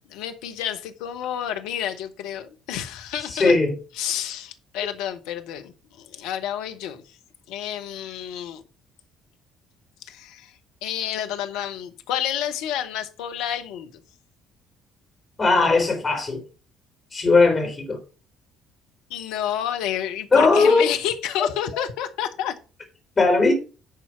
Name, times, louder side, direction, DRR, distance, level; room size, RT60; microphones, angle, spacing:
voice 1, 0.1-3.6 3.9-7.2 7.5-8.6 10.0-14.0 19.1-22.6, left 10 dB, 65° left, 1.0 m, -30 dB
voice 2, 3.3-3.7 15.4-16.4 17.1-18.0 20.3-20.8 23.2-23.5, left 3 dB, 25° left, 3.3 m, -18 dB
10.5 x 4.4 x 5.7 m
figure-of-eight pair, 50°, 0 cm